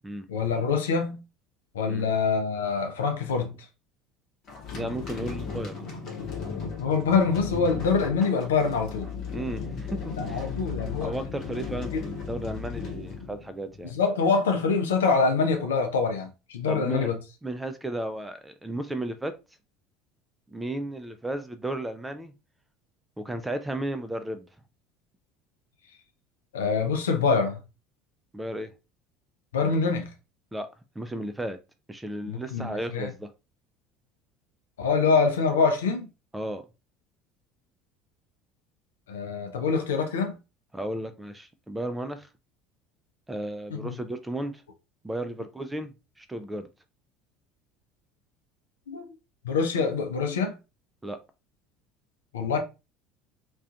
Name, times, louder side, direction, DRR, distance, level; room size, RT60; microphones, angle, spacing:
voice 1, 0.3-1.2 1.7-3.5 6.8-9.1 10.2-11.2 11.9-12.0 13.8-17.2 26.5-27.6 29.5-30.1 32.3-33.1 34.8-36.1 39.1-40.4 43.7-44.0 48.9-49.0 49.4-50.6 52.3-52.6, left 5 dB, 70° left, 0.4 m, -25 dB
sound 1, 4.5-13.9, left 5 dB, 50° left, 0.8 m, -36 dB
voice 2, 4.7-5.9 9.3-10.5 11.0-14.0 16.7-17.1 17.4-19.3 20.5-22.3 23.2-24.5 28.3-28.7 30.5-30.7 31.0-31.6 31.9-33.3 36.3-36.6 40.7-42.3 43.3-44.6 45.0-46.7 51.0-51.2, right 1 dB, 10° right, 0.3 m, -34 dB
2.4 x 2.2 x 2.5 m
figure-of-eight pair, 65°, 0 cm